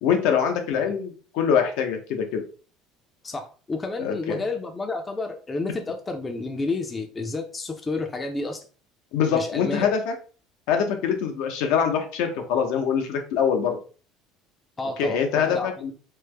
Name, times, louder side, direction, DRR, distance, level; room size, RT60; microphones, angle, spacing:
voice 1, 0.0-2.4 4.0-4.4 9.1-10.1 10.7-13.8 15.0-15.9, left 7 dB, 75° left, 5 dB, 0.6 m, -24 dB
voice 2, 3.2-8.6 9.3-9.9 14.8-15.7, left 3 dB, 15° left, 5 dB, 0.4 m, -30 dB
3.2 x 2.0 x 3.3 m, 0.38 s
cardioid pair, 140°, 0 cm